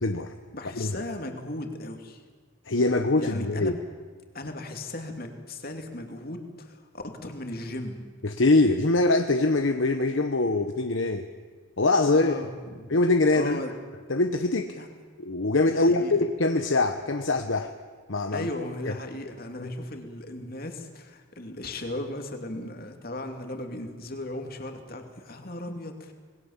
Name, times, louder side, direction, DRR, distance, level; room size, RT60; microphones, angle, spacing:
voice 1, 0.0-0.3 0.8-0.9 2.6-3.7 8.2-11.3 11.8-12.4 12.9-13.6 14.1-14.8 15.2-17.7 18.1-18.5 18.9-19.0, left 2 dB, 65° left, 6 dB, 1.0 m, -23 dB
voice 2, 0.5-2.2 3.2-3.7 4.3-8.0 12.1-12.9 13.3-13.7 14.8-14.9 15.7-16.2 18.3-26.1, left 1 dB, 45° left, 5 dB, 2.7 m, -36 dB
26.5 x 21.0 x 7.3 m, 1.5 s
head